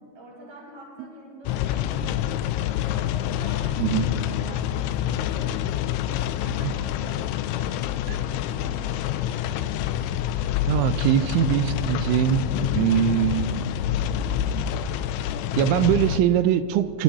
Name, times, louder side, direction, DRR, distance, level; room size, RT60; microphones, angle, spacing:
voice 1, 0.1-5.8 6.1-9.4, right 1 dB, 30° right, -4 dB, 8.1 m, -45 dB
sound 1, 1.5-16.2, left 11 dB, 80° left, 3.0 m, -27 dB
voice 2, 10.7-12.5 12.7-13.6 15.6-17.0, right 11 dB, 85° right, 11 dB, 3.3 m, -22 dB
27.5 x 25.0 x 4.3 m, 2.1 s
omnidirectional pair, 5.5 m